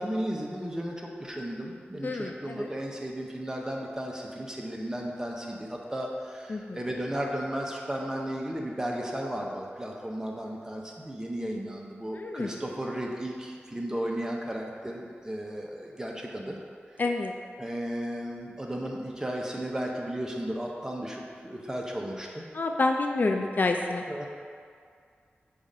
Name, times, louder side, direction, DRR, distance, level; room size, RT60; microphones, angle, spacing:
voice 1, 0.0-16.6 16.9-17.0 17.6-22.4 24.1-24.3, right 1 dB, 15° right, -1 dB, 0.7 m, -34 dB
voice 2, 2.0-2.7 6.5-6.8 12.2-12.5 17.0-17.3 22.5-24.0, left 3 dB, 50° left, 3 dB, 0.3 m, -28 dB
6.9 x 2.5 x 5.4 m, 2.2 s
wide cardioid pair, 90°, 4 cm